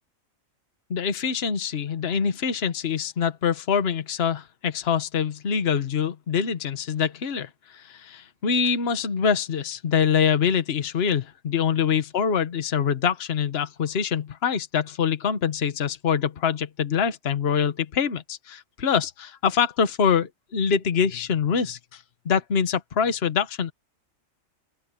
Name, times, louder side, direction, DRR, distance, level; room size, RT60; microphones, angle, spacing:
voice 1, 0.9-23.7, left 7 dB, 50° left, 1.4 m, -25 dB
open air
omnidirectional pair, 1.4 m